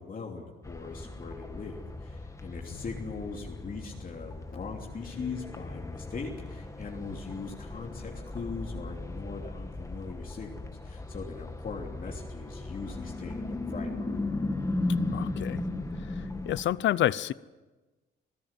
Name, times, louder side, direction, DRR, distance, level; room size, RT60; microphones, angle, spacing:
voice 1, 0.0-14.2, left 4 dB, 45° left, 3.2 m, -40 dB
sound 1, 0.6-16.6, left 2 dB, 15° left, 2.0 m, -36 dB
voice 2, 15.1-15.6 16.2-17.3, left 12 dB, 70° left, 0.6 m, -28 dB
26.5 x 15.5 x 7.5 m
cardioid pair, 90°, 20 cm